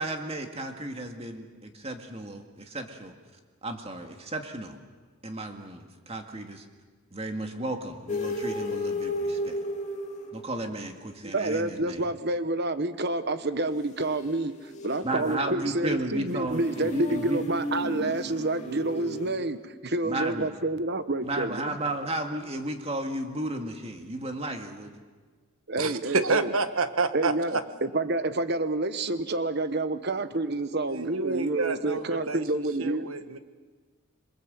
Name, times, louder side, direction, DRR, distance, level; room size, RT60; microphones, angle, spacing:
voice 1, 0.0-3.1 3.6-4.8 5.2-6.6 7.1-9.6 10.3-12.0 15.0-17.4 20.0-20.5 21.2-24.9, right 1 dB, 25° right, 4 dB, 2.1 m, -34 dB
sound 1, 8.1-10.7 14.2-19.4, left 1 dB, 30° left, 2.4 m, -34 dB
voice 2, 11.2-21.8 25.7-26.5 27.1-33.1, right 2 dB, 45° right, 11 dB, 1.2 m, -28 dB
voice 3, 25.8-27.6 30.9-33.4, right 3 dB, 70° right, 10 dB, 1.4 m, -29 dB
27.0 x 22.5 x 7.8 m, 1.5 s
head